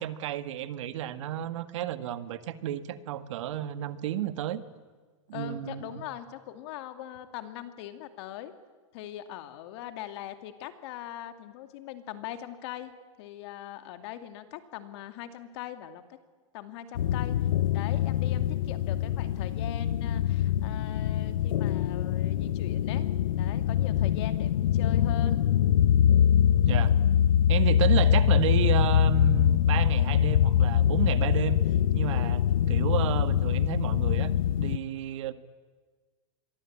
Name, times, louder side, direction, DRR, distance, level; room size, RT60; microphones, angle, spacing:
voice 1, 0.0-4.6 5.3-6.0 26.7-26.9 27.5-31.6 31.9-34.3 34.6-35.3, right 11 dB, 65° right, 11 dB, 1.8 m, -32 dB
voice 2, 5.3-8.6 8.9-16.0 16.5-23.1 23.4-25.4 32.0-32.4, left 11 dB, 55° left, 9 dB, 2.4 m, -41 dB
sound 1, 17.0-34.8, left 10 dB, 85° left, 1.0 m, -24 dB
26.0 x 23.0 x 8.8 m, 1.4 s
supercardioid pair, 145°, 17 cm